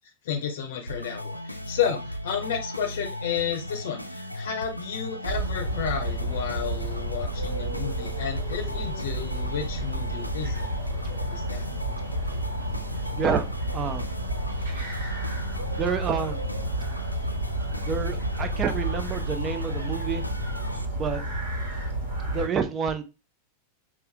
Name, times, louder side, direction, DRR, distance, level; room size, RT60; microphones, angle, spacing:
voice 1, 0.2-10.7 11.0-11.7, left 7 dB, 55° left, 0.7 m, -32 dB
sound 1, 0.9-20.8, left 1 dB, 90° left, 0.5 m, -37 dB
sound 2, 5.2-22.5, right 1 dB, 60° right, 1.7 m, -31 dB
voice 2, 13.2-13.5 13.7-14.1 15.8-16.4 17.9-20.2 20.9-21.2 22.3-23.0, right 6 dB, 25° right, 0.6 m, -28 dB
5.5 x 2.5 x 3.3 m
figure-of-eight pair, 90°, 0 cm